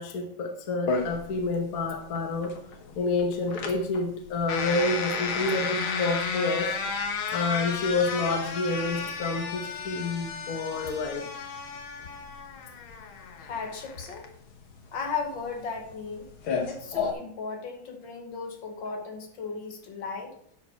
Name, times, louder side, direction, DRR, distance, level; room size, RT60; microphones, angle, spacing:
voice 1, 0.0-2.6 3.0-6.7 7.3-11.2, left 3 dB, 50° left, 1.5 m, -28 dB
sound 1, 0.9-17.1, left 5 dB, 85° left, 2.0 m, -33 dB
voice 2, 13.4-14.3 14.9-16.3 16.7-20.4, left 5 dB, 70° left, 2.0 m, -36 dB
11.0 x 6.8 x 4.5 m
omnidirectional pair, 2.2 m